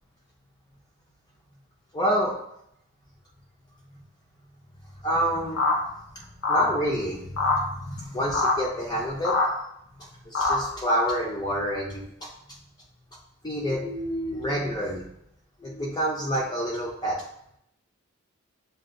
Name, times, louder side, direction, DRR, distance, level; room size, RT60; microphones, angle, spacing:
voice 1, 1.9-2.3 5.0-5.6 6.2-9.4 10.0-12.3 13.4-15.1 15.6-17.2, equal, 20° left, -3 dB, 0.5 m, -28 dB
sound 1, 5.6-5.7 6.4-6.7 7.4-7.6 8.3-8.5 9.2-9.5 10.3-10.6, left 3 dB, 60° left, 0.7 m, -22 dB
6.6 x 2.3 x 2.5 m, 0.76 s
head